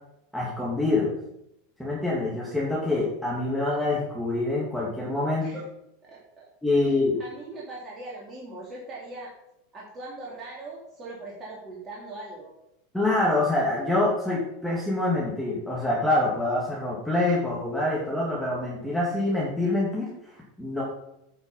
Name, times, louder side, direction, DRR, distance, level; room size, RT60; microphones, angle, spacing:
voice 1, 0.3-1.1 1.8-5.6 6.6-7.2 12.9-20.8, left 2 dB, ahead, -6 dB, 2.8 m, -26 dB
voice 2, 6.0-6.5 7.2-9.3 9.7-12.5, right 2 dB, 30° right, -5 dB, 3.2 m, -40 dB
9.8 x 6.1 x 5.7 m, 0.81 s
hypercardioid pair, 95°, 0 cm